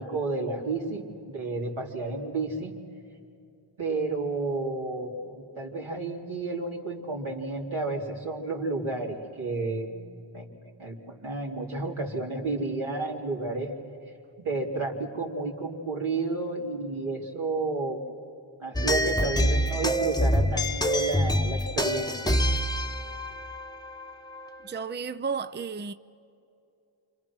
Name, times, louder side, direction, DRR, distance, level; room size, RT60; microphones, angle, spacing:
voice 1, 0.0-2.7 3.8-10.5 10.8-13.7 14.4-18.0 18.6-22.1, right 3 dB, 80° right, 3.7 m, -31 dB
sound 1, 18.7-24.5, equal, 10° left, 1.0 m, -26 dB
voice 2, 24.6-25.9, right 5 dB, 25° right, 0.6 m, -32 dB
29.5 x 25.5 x 6.3 m
cardioid pair, 45°, 47 cm